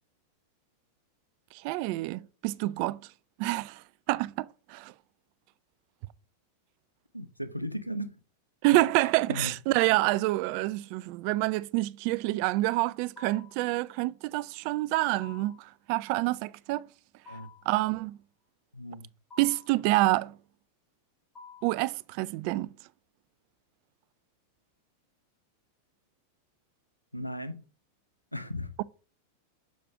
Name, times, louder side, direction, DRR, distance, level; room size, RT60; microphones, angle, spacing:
voice 1, 1.6-3.0 3.4-3.8 4.1-4.9 8.6-16.8 17.7-18.1 19.4-20.3 21.6-22.7, right 19 dB, 45° right, 0.3 m, -27 dB
voice 2, 7.1-8.2 9.3-9.5 17.3-17.5 18.7-19.1 27.1-27.6 28.3-28.7, equal, 90° left, 0.7 m, -36 dB
sound 1, 13.2-13.6 15.2-15.7 17.3-17.7 19.3-19.8 21.3-21.8, left 5 dB, 20° left, 2.7 m, -50 dB
6.3 x 5.0 x 4.7 m
figure-of-eight pair, 90°, 0 cm